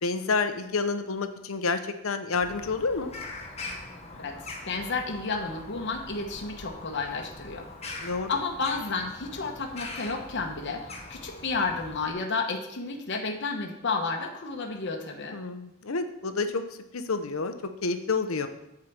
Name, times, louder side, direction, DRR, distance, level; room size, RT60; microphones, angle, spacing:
voice 1, 0.0-3.1 8.0-8.3 15.3-16.6 16.9-17.5 17.8-18.5, left 4 dB, 90° left, 9 dB, 0.8 m, -29 dB
Bird vocalization bird call bird song, 2.3-12.1, left 2 dB, 30° left, 1.3 m, -42 dB
voice 2, 4.7-15.4, left 4 dB, 60° left, 2 dB, 1.0 m, -32 dB
7.8 x 4.9 x 7.3 m, 0.84 s
head